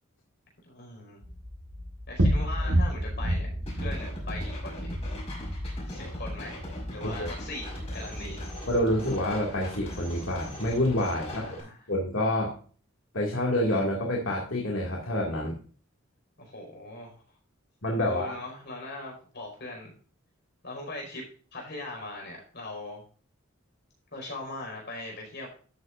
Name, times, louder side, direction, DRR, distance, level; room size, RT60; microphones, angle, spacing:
voice 1, 0.6-1.2 2.1-5.0 5.8-8.5 11.3-11.8 16.4-17.1 18.0-19.9 20.6-21.2 21.5-23.0 24.1-25.5, left 2 dB, 55° left, 0 dB, 5.1 m, -40 dB
sound 1, 1.2-9.6, equal, 90° right, 2.1 m, -31 dB
sound 2, 3.7-11.6, equal, 30° left, 5.4 m, -41 dB
voice 2, 8.7-11.5 11.9-12.5 13.1-15.6 17.8-18.3, left 1 dB, 70° left, -2 dB, 2.3 m, -27 dB
12.5 x 9.2 x 2.6 m, 0.42 s
head